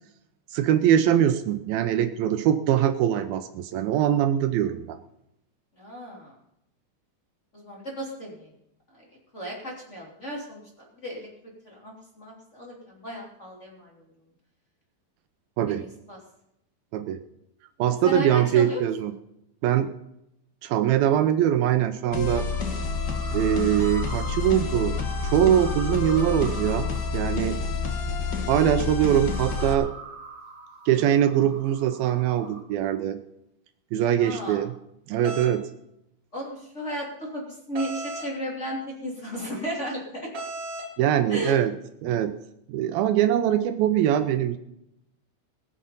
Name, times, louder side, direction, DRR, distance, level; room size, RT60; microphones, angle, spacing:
voice 1, 0.5-5.0 15.6-15.8 16.9-17.2 17.8-19.1 19.6-19.9 20.6-22.5 23.3-24.9 25.2-27.6 28.5-29.9 30.9-33.2 33.9-34.7 35.1-35.6 41.0-41.7 42.0-42.3 42.7-44.6, right 10 dB, 80° right, 8 dB, 2.5 m, -22 dB
voice 2, 5.8-6.3 7.5-8.5 8.9-9.1 9.3-11.3 11.6-14.0 15.7-16.2 18.0-18.8 34.2-34.6 36.3-40.3 41.3-41.6, equal, 20° left, -2 dB, 2.8 m, -35 dB
sound 1, 22.1-29.7, left 5 dB, 75° left, 0.9 m, -28 dB
sound 2, 22.5-32.6, right 4 dB, 15° right, 4.9 m, -44 dB
sound 3, 35.2-35.5 37.8-38.3 40.3-40.9, right 1 dB, 45° right, 2.9 m, -34 dB
20.5 x 7.6 x 5.5 m, 0.80 s
omnidirectional pair, 4.4 m